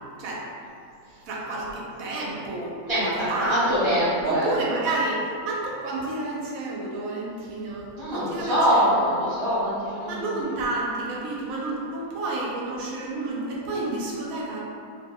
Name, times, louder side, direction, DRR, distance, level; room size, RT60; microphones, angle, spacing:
voice 1, 1.3-3.9 4.2-8.9 10.1-14.6, right 2 dB, 75° right, -4 dB, 1.0 m, -30 dB
voice 2, 2.9-4.5 8.0-10.3, equal, 35° left, -13 dB, 0.4 m, -24 dB
2.7 x 2.1 x 3.4 m, 2.6 s
omnidirectional pair, 1.5 m